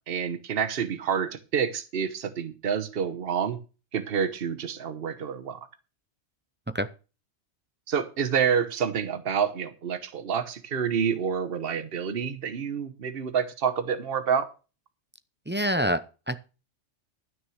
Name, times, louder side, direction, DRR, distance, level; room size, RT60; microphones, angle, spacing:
voice 1, 0.1-3.6 3.9-5.6 7.9-14.5, right 7 dB, 55° right, 12 dB, 1.2 m, -28 dB
voice 2, 15.5-16.4, equal, 15° right, 12 dB, 0.4 m, -27 dB
12.5 x 6.3 x 6.3 m, 0.33 s
omnidirectional pair, 1.2 m